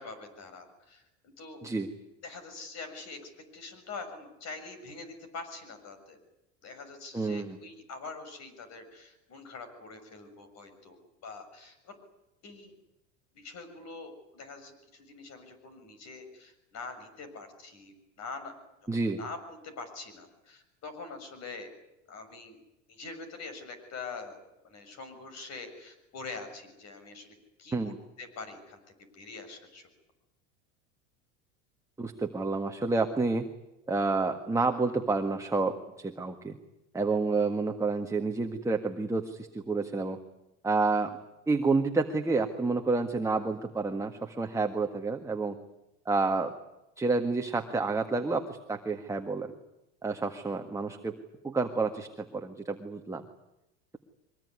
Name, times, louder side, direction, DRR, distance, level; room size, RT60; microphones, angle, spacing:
voice 1, 0.0-1.6 2.2-6.2 6.6-11.0 11.2-12.0 12.4-12.7 13.3-18.5 18.9-21.7 22.1-22.6 22.9-28.8 29.1-29.9, left 3 dB, 45° left, 9 dB, 6.8 m, -44 dB
voice 2, 7.1-7.6 18.9-19.2 27.7-28.0 32.0-33.5 33.9-36.5 36.9-40.2 40.6-41.2 41.5-45.6 46.0-46.5 47.0-49.5 50.0-51.1 51.4-53.2, right 3 dB, 10° right, 4 dB, 1.7 m, -29 dB
23.5 x 20.0 x 9.7 m, 0.93 s
supercardioid pair, 110°, 37 cm